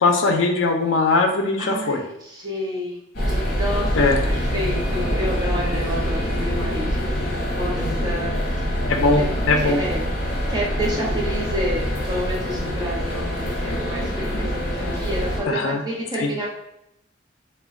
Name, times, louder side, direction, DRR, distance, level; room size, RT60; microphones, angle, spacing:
voice 1, 0.0-2.0 3.9-4.2 8.9-9.8 15.5-15.8 16.2-16.3, left 3 dB, 75° left, 4 dB, 0.4 m, -20 dB
voice 2, 1.6-3.0 3.3-7.1 7.5-9.3 9.6-16.5, equal, 20° right, -4 dB, 0.7 m, -30 dB
sound 1, 3.1-15.4, equal, 50° left, 0.8 m, -25 dB
2.2 x 2.1 x 3.5 m, 0.80 s
head